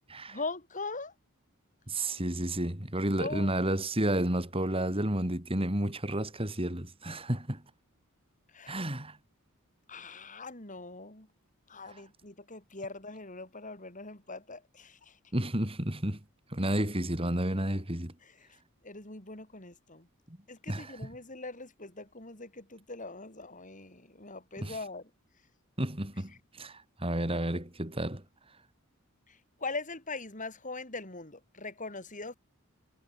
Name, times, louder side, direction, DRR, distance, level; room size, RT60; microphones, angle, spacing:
voice 1, 0.3-1.1 3.2-3.5 8.5-8.8 9.9-11.3 11.7-15.2 18.2-18.5 18.8-20.1 20.5-25.1 29.3-32.4, left 3 dB, 35° left, 6.1 m, -41 dB
voice 2, 1.9-7.6 8.7-9.2 11.9-12.0 15.3-16.2 16.5-18.1 20.7-21.1 24.6-24.8 25.8-28.2, right 1 dB, 25° right, 3.6 m, -31 dB
head